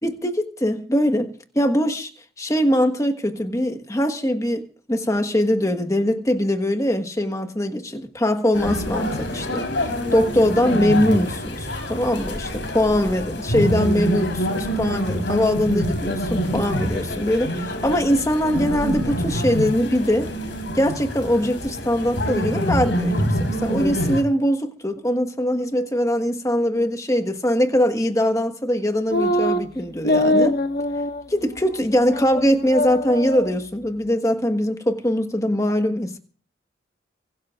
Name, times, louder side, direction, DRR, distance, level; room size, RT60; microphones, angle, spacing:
voice 1, 0.0-2.1 2.4-20.3 20.7-30.6 31.3-36.2, equal, 15° left, 1.4 m, -22 dB
sound 1, 8.5-24.2, equal, 75° left, 3.9 m, -26 dB
sound 2, 29.1-29.6 30.0-31.2 31.6-31.7 32.1-32.4 32.7-33.5, left 1 dB, 55° left, 1.4 m, -22 dB
24.5 x 17.0 x 2.5 m
head